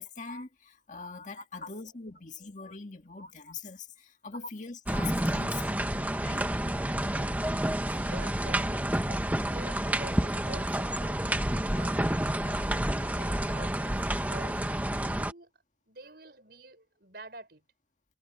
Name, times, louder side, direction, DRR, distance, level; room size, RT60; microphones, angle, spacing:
voice 1, 0.0-6.4, left 4 dB, 45° left, 1.9 m, -42 dB
sound 1, 4.9-15.3, right 1 dB, 10° right, 1.1 m, -29 dB
voice 2, 6.6-7.4 7.9-15.5 15.9-17.6, right 2 dB, 60° right, 6.4 m, -49 dB
head